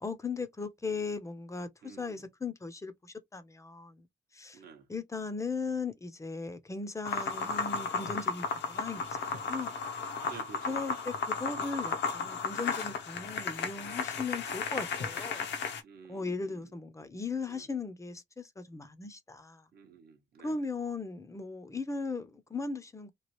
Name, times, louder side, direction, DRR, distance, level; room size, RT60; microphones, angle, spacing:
voice 1, 0.0-4.1 4.3-4.6 4.9-9.7 10.7-15.4 16.1-19.7 20.4-23.1, left 4 dB, 15° left, 0.6 m, -38 dB
voice 2, 1.8-2.3 4.5-4.9 7.2-7.7 10.3-10.9 15.8-16.7 17.5-17.7 19.7-20.6, right 5 dB, 50° right, 0.8 m, -52 dB
sound 1, 7.1-15.8, left 5 dB, 60° left, 0.8 m, -34 dB
3.1 x 2.3 x 2.9 m
cardioid pair, 90°, 20 cm